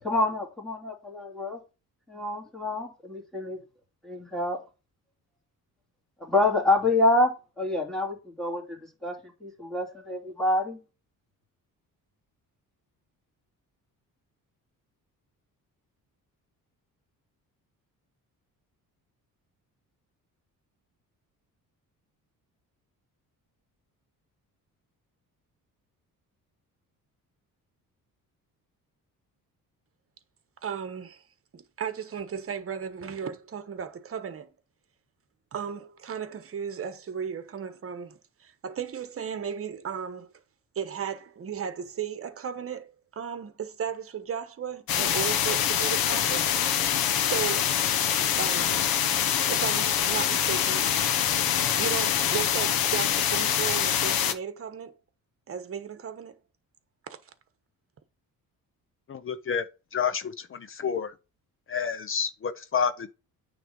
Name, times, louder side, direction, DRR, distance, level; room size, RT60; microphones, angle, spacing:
voice 1, 0.0-1.6 2.1-3.6 4.0-4.6 6.2-9.1 9.4-10.8, left 2 dB, ahead, 2.6 m, -27 dB
voice 2, 30.6-31.2 31.5-34.5 35.5-40.3 40.7-46.4 47.2-47.8 48.2-48.9 49.5-50.9 51.7-54.9 55.5-56.3 57.1-57.2, right 7 dB, 40° right, 1.2 m, -35 dB
sound 1, 44.9-54.3, left 9 dB, 85° left, 1.0 m, -25 dB
voice 3, 59.1-59.7 59.9-61.1 61.7-63.1, left 7 dB, 35° left, 0.7 m, -29 dB
9.1 x 3.5 x 5.4 m
cardioid pair, 125°, 35 cm